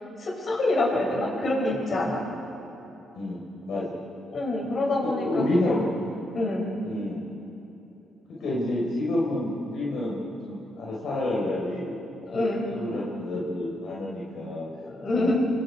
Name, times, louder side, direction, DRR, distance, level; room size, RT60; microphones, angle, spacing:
voice 1, 0.2-2.2 4.3-5.9 6.3-6.7 12.2-12.6 14.8-15.4, left 2 dB, 45° left, -2 dB, 6.7 m, -26 dB
voice 2, 5.0-5.8 6.8-7.2 8.4-10.2 10.4-11.9 12.3-12.5 12.7-14.7 15.1-15.3, left 1 dB, 70° left, -5 dB, 4.6 m, -29 dB
25.5 x 25.0 x 4.9 m, 3.0 s
cardioid pair, 80°, 0 cm